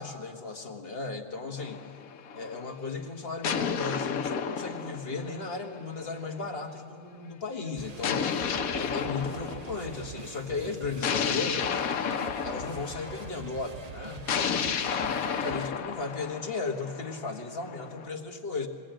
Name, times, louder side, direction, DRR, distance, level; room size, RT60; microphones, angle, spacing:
voice 1, 0.0-1.8 2.3-8.2 8.7-11.8 12.4-18.7, left 4 dB, 45° left, 3 dB, 1.6 m, -36 dB
sound 1, 1.6-2.6 3.4-6.0 8.0-10.2 11.0-13.3 14.3-18.1, left 7 dB, 80° left, 1.3 m, -32 dB
sound 2, 7.8-15.7, right 5 dB, 35° right, 0.8 m, -45 dB
22.0 x 17.0 x 9.0 m, 2.4 s
omnidirectional pair, 1.5 m